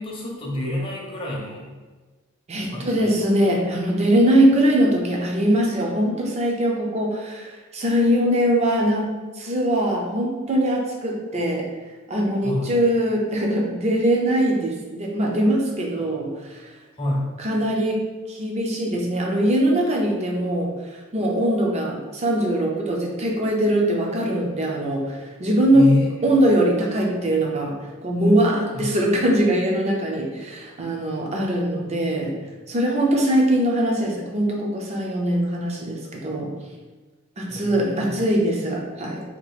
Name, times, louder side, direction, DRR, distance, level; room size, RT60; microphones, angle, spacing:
voice 1, 0.0-1.7 2.6-3.1 12.4-12.7 17.0-17.3 25.7-26.1 28.7-28.9 37.5-38.2, left 1 dB, 25° left, -2 dB, 0.6 m, -27 dB
voice 2, 2.5-9.1 9.4-11.7 12.1-16.7 17.4-18.0 18.3-26.0 26.2-32.3 32.7-36.5 37.4-39.2, right 1 dB, 30° right, -1 dB, 0.5 m, -21 dB
2.8 x 2.5 x 4.0 m, 1.3 s
head